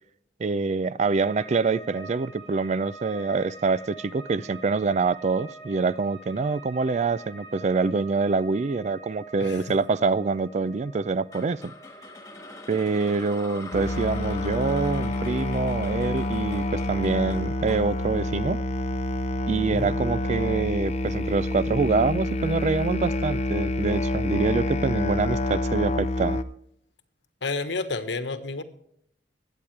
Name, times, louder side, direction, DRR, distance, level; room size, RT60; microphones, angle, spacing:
voice 1, 0.4-11.7 12.7-18.6 19.5-26.4, right 4 dB, 40° right, 0.4 m, -25 dB
sound 1, 1.2-18.3 18.6-19.3, right 3 dB, 85° right, 6.3 m, -47 dB
sound 2, 11.3-19.5, left 3 dB, 15° left, 1.5 m, -44 dB
Musical instrument, 13.7-26.4, left 1 dB, 35° left, 0.7 m, -27 dB
voice 2, 27.4-28.6, left 3 dB, 75° left, 1.3 m, -30 dB
21.5 x 8.7 x 3.2 m
head